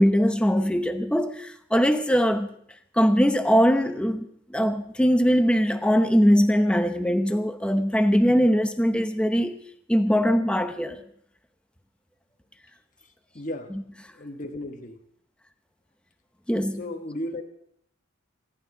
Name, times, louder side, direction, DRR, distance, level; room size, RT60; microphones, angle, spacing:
voice 1, 0.0-2.5 3.0-9.6 9.9-11.0 16.5-16.8, equal, 5° left, 0.8 m, -21 dB
voice 2, 13.3-13.8 14.1-15.0 16.8-17.4, left 1 dB, 35° left, 1.3 m, -34 dB
25.5 x 12.0 x 3.9 m
head